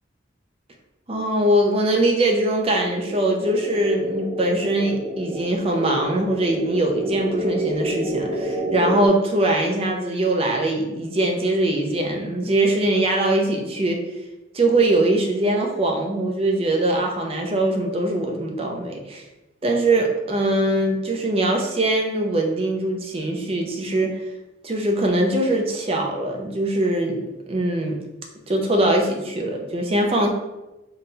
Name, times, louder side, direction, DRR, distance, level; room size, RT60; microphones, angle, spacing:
voice 1, 1.1-14.0 14.5-19.2 19.6-24.2 24.6-28.0 28.5-30.3, right 1 dB, 30° right, 2 dB, 0.5 m, -22 dB
sound 1, 2.8-9.1, right 1 dB, 60° right, 0.8 m, -28 dB
3.8 x 2.2 x 3.8 m, 1.0 s
head